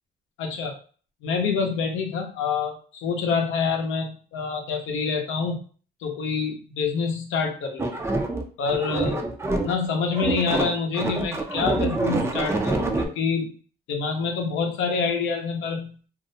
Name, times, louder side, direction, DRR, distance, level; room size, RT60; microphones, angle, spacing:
voice 1, 0.4-0.8 1.2-5.6 6.0-7.9 8.6-9.3 9.6-13.5 13.9-16.0, left 5 dB, 85° left, 3 dB, 0.6 m, -27 dB
sound 1, 7.8-9.9 10.1-13.1, right 2 dB, 15° right, 0.4 m, -26 dB
2.4 x 2.0 x 2.6 m, 0.41 s
cardioid pair, 90°, 20 cm